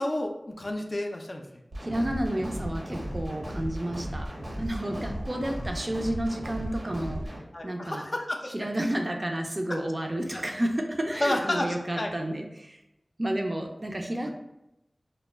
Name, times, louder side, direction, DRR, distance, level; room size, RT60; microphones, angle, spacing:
voice 1, 0.0-1.4 5.2-5.3 7.5-8.7 9.7-9.8 10.3-10.4 11.1-12.1, left 1 dB, 50° left, 3 dB, 0.3 m, -31 dB
sound 1, 1.7-7.4, equal, 80° right, 0.8 m, -36 dB
voice 2, 1.8-4.3 4.6-7.3 7.6-8.0 8.5-12.8 13.2-14.3, right 1 dB, 40° right, 3 dB, 0.4 m, -31 dB
2.2 x 2.1 x 3.3 m, 0.88 s
wide cardioid pair, 55°, 0 cm